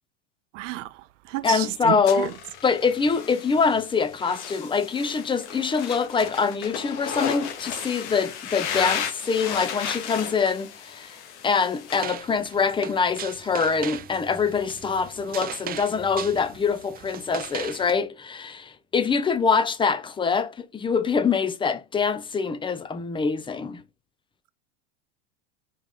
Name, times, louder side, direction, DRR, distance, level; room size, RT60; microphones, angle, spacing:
voice 1, 0.5-0.9 1.3-2.3, right 16 dB, 90° right, 0.7 m, -31 dB
voice 2, 1.4-2.3 2.6-11.2 11.4-23.8, left 5 dB, 15° left, 0.7 m, -24 dB
sound 1, 2.1-12.0, left 7 dB, 75° left, 2.4 m, -34 dB
sound 2, 11.9-17.9, right 10 dB, 25° right, 0.6 m, -38 dB
5.4 x 5.2 x 3.8 m
supercardioid pair, 130°, 36 cm